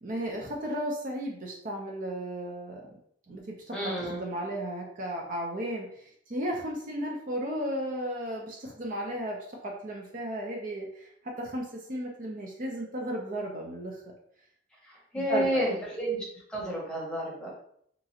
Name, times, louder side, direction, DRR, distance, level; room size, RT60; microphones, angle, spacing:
voice 1, 0.0-2.8 3.3-14.0 15.1-15.5, right 1 dB, 45° right, -1 dB, 0.5 m, -34 dB
voice 2, 3.7-4.2 14.8-16.2 16.5-17.5, right 1 dB, 5° left, -5 dB, 0.8 m, -31 dB
2.9 x 2.4 x 2.7 m, 0.67 s
head